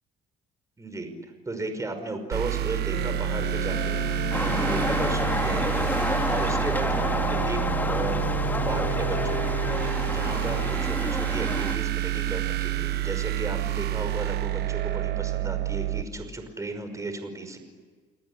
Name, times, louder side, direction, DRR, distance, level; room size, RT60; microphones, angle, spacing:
voice 1, 0.8-1.1 1.5-5.9 6.3-8.3 8.6-17.6, right 2 dB, 20° right, 7 dB, 5.5 m, -35 dB
sound 1, 2.3-16.0, right 15 dB, 70° right, 1.3 m, -28 dB
sound 2, 2.9-10.9, left 10 dB, 50° left, 0.9 m, -34 dB
sound 3, 4.3-11.8, left 2 dB, 10° left, 2.4 m, -30 dB
29.5 x 19.5 x 10.0 m, 1.5 s
cardioid pair, 110°, 17 cm